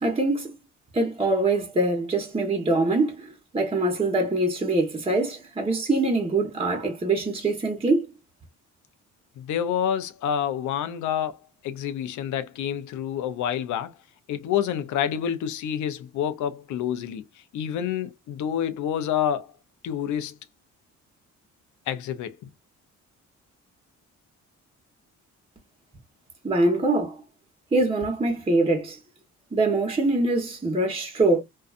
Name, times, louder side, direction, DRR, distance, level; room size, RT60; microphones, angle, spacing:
voice 1, 0.0-0.5 0.9-8.1 26.4-27.2 27.7-29.0 29.5-31.4, right 2 dB, 20° right, 1.1 m, -24 dB
voice 2, 9.4-11.4 11.6-13.9 14.3-17.2 17.5-19.5 19.8-20.3 21.9-22.4, left 9 dB, 75° left, 0.6 m, -28 dB
2.6 x 2.3 x 2.4 m
cardioid pair, 90°, 30 cm